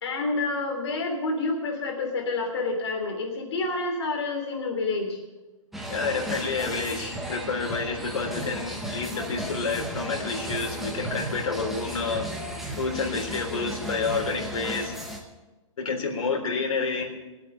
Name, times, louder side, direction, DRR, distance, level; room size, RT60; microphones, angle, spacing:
voice 1, 0.0-5.2 13.5-13.6, left 3 dB, 55° left, 2 dB, 3.2 m, -28 dB
sound 1, 5.7-15.2, right 1 dB, ahead, 0.9 m, -35 dB
voice 2, 5.9-12.4 12.8-14.9 15.8-17.1, left 4 dB, 85° left, 1 dB, 3.7 m, -29 dB
19.5 x 8.3 x 6.7 m, 1.1 s
hypercardioid pair, 175°, 17 cm